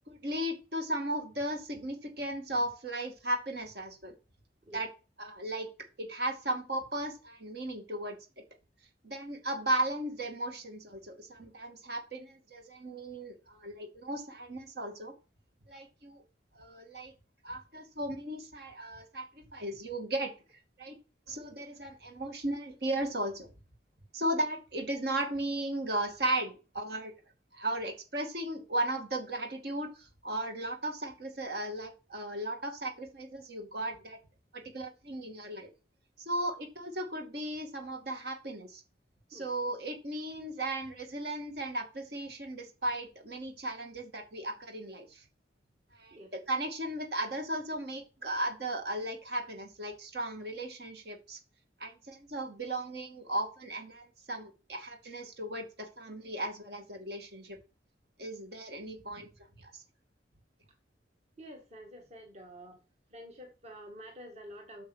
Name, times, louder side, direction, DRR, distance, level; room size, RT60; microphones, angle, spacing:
voice 1, 0.1-4.1 4.7-4.9 5.2-5.7 6.0-8.2 9.0-15.1 15.7-16.2 16.5-17.1 17.4-20.4 20.8-21.0 21.3-23.5 24.1-27.1 27.5-34.2 34.5-35.7 36.3-38.8 39.3-45.2 45.9-46.2 46.5-51.4 51.8-57.6 58.2-59.3 59.6-59.8, right 1 dB, 65° right, 4 dB, 2.4 m, -36 dB
voice 2, 61.4-62.8 63.1-64.8, equal, 40° right, 3 dB, 1.9 m, -48 dB
8.7 x 6.5 x 6.4 m, 0.32 s
head